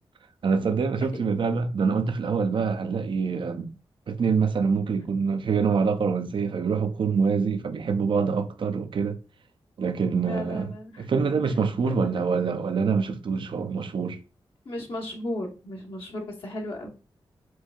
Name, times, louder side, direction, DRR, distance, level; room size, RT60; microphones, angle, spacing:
voice 1, 0.4-3.7 4.1-9.2 9.8-14.2, right 5 dB, 55° right, 0.4 m, -25 dB
voice 2, 10.2-11.0 11.4-11.5 11.9-12.1 14.6-16.9, left 1 dB, 65° left, 1.0 m, -35 dB
4.5 x 2.5 x 2.3 m
cardioid pair, 55°, 10 cm